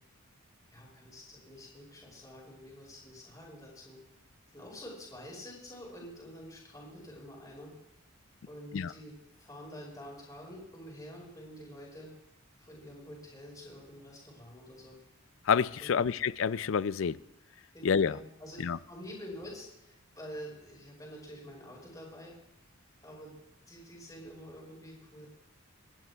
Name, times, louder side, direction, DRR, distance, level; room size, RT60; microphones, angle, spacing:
voice 1, 0.7-4.0 4.5-7.7 8.5-9.1 9.4-12.1 12.6-15.0 15.8-16.0 18.1-18.6 18.9-22.3 23.0-23.3 23.7-25.3, equal, 15° left, 5.2 m, -47 dB
voice 2, 15.5-17.2 17.8-18.2 18.6-18.8, left 6 dB, 65° left, 0.4 m, -28 dB
28.0 x 12.0 x 2.4 m
head